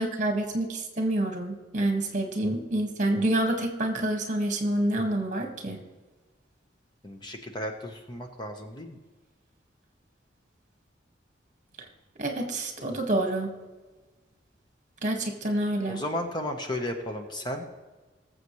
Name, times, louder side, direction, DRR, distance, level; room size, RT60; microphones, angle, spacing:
voice 1, 0.0-5.8 12.2-13.5 15.0-16.0, right 1 dB, 40° right, 3 dB, 1.8 m, -27 dB
voice 2, 7.0-9.0 15.9-17.6, left 1 dB, 25° left, 4 dB, 1.1 m, -34 dB
20.5 x 7.4 x 3.2 m, 1.3 s
head